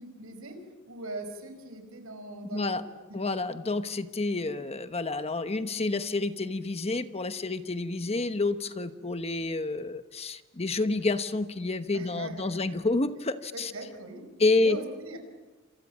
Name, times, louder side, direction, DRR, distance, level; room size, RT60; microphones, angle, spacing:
voice 1, 0.0-2.9 4.4-4.7 11.9-12.8 13.5-14.3 14.6-15.2, right 2 dB, 80° right, 7 dB, 5.2 m, -41 dB
voice 2, 2.5-2.8 3.1-13.7 14.4-14.8, left 3 dB, 30° left, 10 dB, 1.1 m, -29 dB
28.5 x 27.5 x 7.4 m, 1.2 s
head